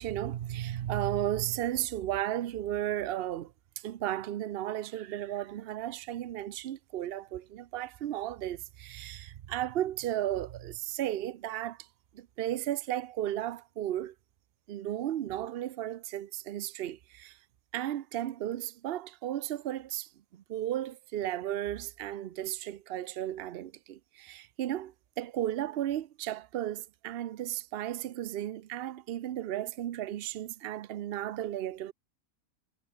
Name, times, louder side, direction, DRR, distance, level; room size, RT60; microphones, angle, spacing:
voice 1, 0.0-11.9 12.1-14.1 14.7-17.4 17.7-31.9, right 12 dB, 90° right, 0.5 m, -34 dB
omnidirectional pair, 1.7 m